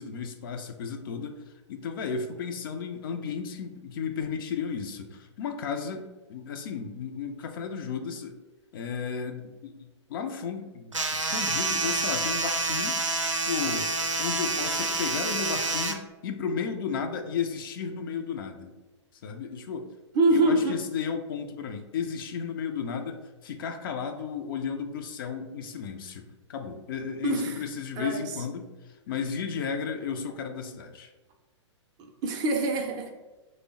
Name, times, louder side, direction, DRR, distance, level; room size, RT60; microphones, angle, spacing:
voice 1, 0.0-8.4 8.7-13.0 13.4-13.9 14.2-18.7 19.2-19.9 20.3-31.1, left 6 dB, 45° left, 5 dB, 0.4 m, -34 dB
sound 1, 10.9-15.9, right 3 dB, 90° right, 0.5 m, -28 dB
voice 2, 20.1-20.7 27.2-27.6 28.0-28.3 32.0-33.1, right 2 dB, 25° right, 2 dB, 0.4 m, -25 dB
3.2 x 2.0 x 3.7 m, 1.1 s
figure-of-eight pair, 110°, 16 cm